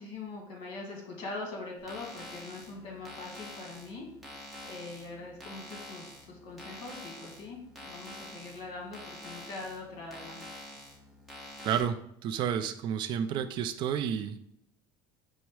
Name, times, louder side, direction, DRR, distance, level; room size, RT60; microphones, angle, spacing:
voice 1, 0.0-4.0 4.6-10.4, left 3 dB, 55° left, 0 dB, 1.6 m, -42 dB
sound 1, 1.8-11.8, left 1 dB, ahead, 1.0 m, -47 dB
voice 2, 11.6-12.0 12.2-14.4, right 8 dB, 50° right, 10 dB, 0.4 m, -30 dB
5.6 x 2.1 x 4.6 m, 0.75 s
cardioid pair, 135°, 11 cm